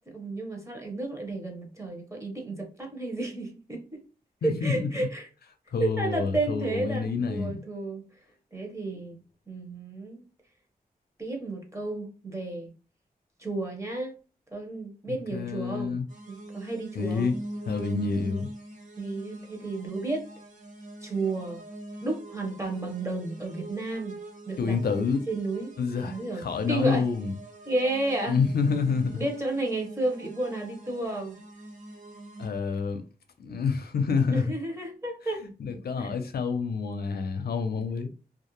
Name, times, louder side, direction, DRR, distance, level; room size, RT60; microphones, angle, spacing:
voice 1, 0.1-4.0 4.4-5.3 5.8-8.0 8.5-9.2 9.5-10.2 11.2-12.7 13.4-14.1 14.5-17.3 19.0-20.2 21.0-21.6 22.0-24.1 24.5-24.8 25.3-25.7 26.1-26.4 26.7-27.0 27.7-28.4 29.1-31.4 34.3-35.4 36.0-36.1, right 2 dB, 20° right, 0.8 m, -32 dB
voice 2, 4.4-5.1 5.7-7.6 15.1-16.1 16.9-17.3 17.7-18.5 24.6-25.2 25.8-27.3 28.3-29.3 32.4-33.0 33.4-34.4 35.6-38.1, left 5 dB, 80° left, 0.5 m, -28 dB
sound 1, 16.1-32.5, right 1 dB, 55° right, 0.8 m, -44 dB
2.4 x 2.1 x 2.9 m
wide cardioid pair, 90°, 16 cm